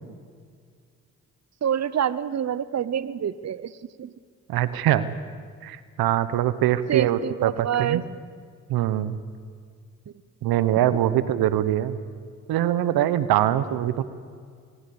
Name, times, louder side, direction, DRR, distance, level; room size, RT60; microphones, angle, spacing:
voice 1, 1.6-4.1 6.9-8.0, right 9 dB, 45° right, 17 dB, 0.9 m, -27 dB
voice 2, 4.5-5.1 5.6-8.0 8.7-9.2 10.4-12.0 12.5-14.0, right 12 dB, 80° right, 14 dB, 1.0 m, -23 dB
23.0 x 20.0 x 7.1 m, 2.1 s
supercardioid pair, 45°, 36 cm